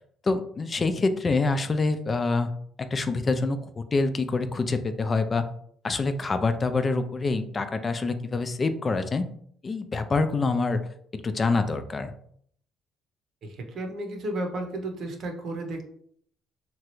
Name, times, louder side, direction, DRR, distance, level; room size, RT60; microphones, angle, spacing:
voice 1, 0.2-2.5 2.8-5.5 5.8-9.3 9.6-10.8 11.2-12.1, left 3 dB, 35° left, 10 dB, 0.3 m, -26 dB
voice 2, 13.4-15.8, right 1 dB, 60° right, 3 dB, 0.7 m, -33 dB
2.9 x 2.3 x 3.0 m, 0.64 s
supercardioid pair, 75°, 0 cm